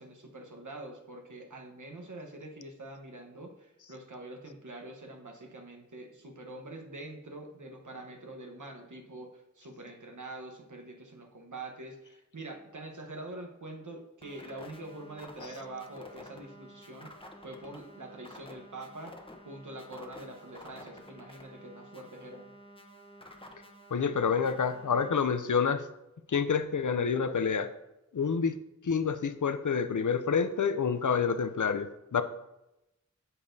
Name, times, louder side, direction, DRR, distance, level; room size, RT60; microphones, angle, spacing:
voice 1, 0.0-17.1 17.4-19.2 19.4-22.5, right 2 dB, 75° right, 2 dB, 1.1 m, -45 dB
sound 1, 14.2-25.2, equal, 15° left, 0.9 m, -51 dB
voice 2, 23.9-25.9 26.3-27.7 28.1-28.6 28.8-32.2, left 6 dB, 80° left, 10 dB, 0.5 m, -28 dB
8.3 x 6.9 x 2.7 m, 0.92 s
wide cardioid pair, 45°, 30 cm